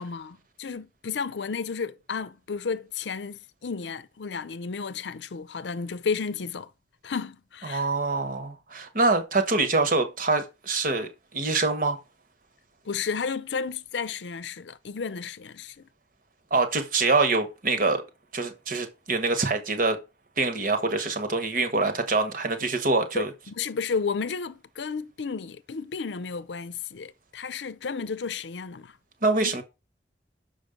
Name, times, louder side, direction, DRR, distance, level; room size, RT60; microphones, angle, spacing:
voice 1, 0.0-6.7 7.0-7.9 12.9-15.7 23.1-28.9 29.4-29.5, left 5 dB, 85° left, 0.6 m, -32 dB
voice 2, 7.6-12.0 16.5-18.0 18.3-20.0 20.4-23.3 29.2-29.6, right 3 dB, 50° right, 1.2 m, -25 dB
6.5 x 5.3 x 5.2 m
head